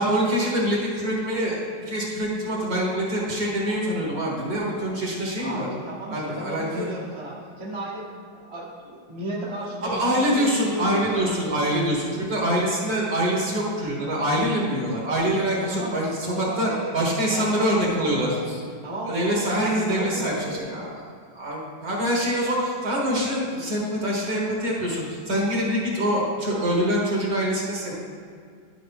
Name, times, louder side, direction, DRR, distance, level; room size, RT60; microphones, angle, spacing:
voice 1, 0.0-1.6 1.9-5.7 6.1-6.9 9.8-18.6 19.1-21.0 21.3-27.9, equal, 50° right, -4 dB, 2.0 m, -25 dB
voice 2, 5.4-11.4 15.5-16.0 16.3-16.9 17.3-18.0 18.8-20.7, right 1 dB, 20° right, -5 dB, 1.0 m, -34 dB
11.5 x 5.2 x 3.6 m, 2.1 s
omnidirectional pair, 2.0 m